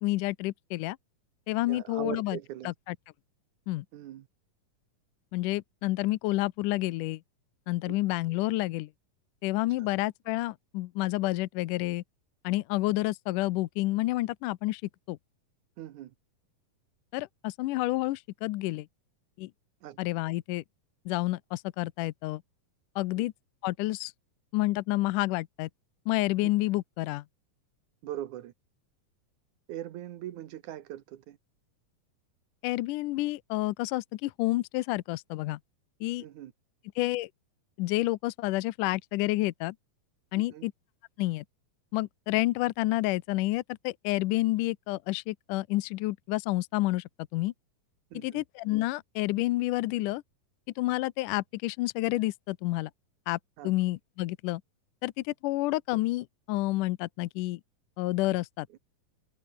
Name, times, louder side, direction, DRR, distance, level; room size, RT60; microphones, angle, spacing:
voice 1, 0.0-1.0 1.5-2.4 2.7-3.0 3.7-3.9 5.3-7.2 7.7-8.9 9.4-12.0 12.4-14.8 15.1-15.2 17.1-18.9 19.4-19.5 20.0-20.6 21.1-22.4 23.0-23.3 23.6-24.1 24.5-25.7 26.1-27.2 32.6-35.6 36.0-36.3 37.0-37.3 37.8-39.8 40.3-40.7 41.2-41.4 41.9-47.5 48.1-50.2 50.8-52.9 53.3-53.4 53.6-54.6 55.0-57.6 58.0-58.8, left 18 dB, 75° left, 2.1 m, -29 dB
voice 2, 1.7-2.7 3.9-4.3 7.8-7.9 9.8-9.9 15.8-16.1 19.8-20.0 23.2-23.3 26.4-26.5 28.0-28.5 29.7-31.4 36.2-36.5 40.3-40.7 48.1-48.4 53.6-53.7, right 12 dB, 65° right, 2.3 m, -40 dB
omnidirectional pair, 4.1 m